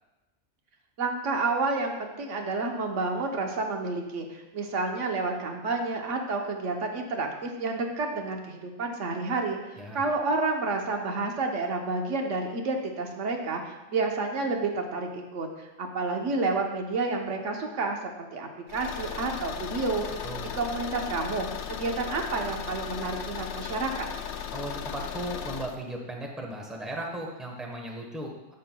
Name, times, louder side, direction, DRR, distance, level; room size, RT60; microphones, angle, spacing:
voice 1, 1.0-20.3 20.5-24.1, right 3 dB, 80° right, 2 dB, 1.2 m, -30 dB
Car / Engine, 18.7-25.8, left 8 dB, 70° left, 0.8 m, -37 dB
voice 2, 24.5-28.5, right 1 dB, ahead, 0 dB, 0.9 m, -36 dB
10.5 x 7.6 x 2.2 m, 1.0 s
omnidirectional pair, 1.3 m